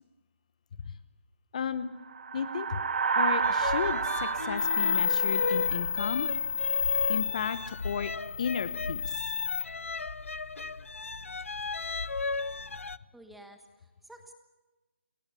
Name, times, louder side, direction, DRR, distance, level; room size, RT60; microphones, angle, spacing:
voice 1, 1.5-1.9 2.3-2.8 3.1-6.3 7.1-9.2, left 7 dB, 35° left, 13 dB, 1.0 m, -34 dB
sound 1, 2.1-6.7, right 5 dB, 45° right, 1.1 m, -31 dB
sound 2, 3.4-13.0, left 4 dB, 85° left, 0.8 m, -36 dB
sound 3, 4.6-9.6, left 5 dB, 65° left, 1.5 m, -30 dB
voice 2, 13.1-14.3, right 1 dB, ahead, 5 dB, 1.3 m, -51 dB
29.0 x 22.5 x 6.9 m, 1.2 s
hypercardioid pair, 165°, 7 cm